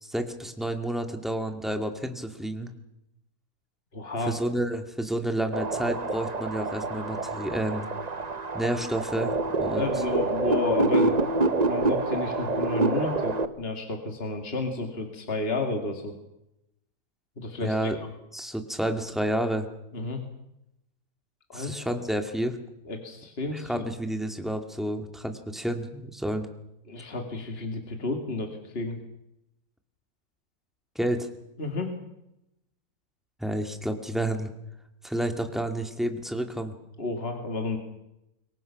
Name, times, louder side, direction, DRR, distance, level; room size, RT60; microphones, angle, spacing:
voice 1, 0.0-2.7 4.2-7.9 8.5-9.9 17.6-18.0 18.3-19.7 21.5-22.6 23.5-26.5 31.0-31.3 33.4-34.5 35.0-36.7, right 1 dB, ahead, 5 dB, 2.2 m, -30 dB
voice 2, 3.9-4.4 9.7-16.1 17.4-17.7 19.9-20.2 21.5-21.9 22.9-23.9 26.9-29.0 31.6-32.0 37.0-37.8, left 3 dB, 40° left, 3 dB, 2.7 m, -31 dB
sound 1, 5.5-13.5, right 3 dB, 30° right, 1.0 m, -27 dB
26.5 x 23.5 x 6.0 m, 0.86 s
omnidirectional pair, 1.6 m